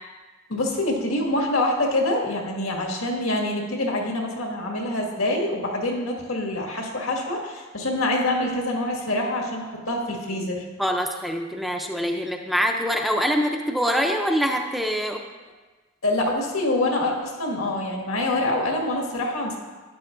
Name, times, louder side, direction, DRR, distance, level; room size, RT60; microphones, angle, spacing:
voice 1, 0.5-10.6 16.0-19.6, left 1 dB, 85° left, 0 dB, 1.8 m, -25 dB
voice 2, 10.8-15.2, equal, ahead, 2 dB, 0.5 m, -24 dB
12.0 x 9.9 x 2.5 m, 1.3 s
head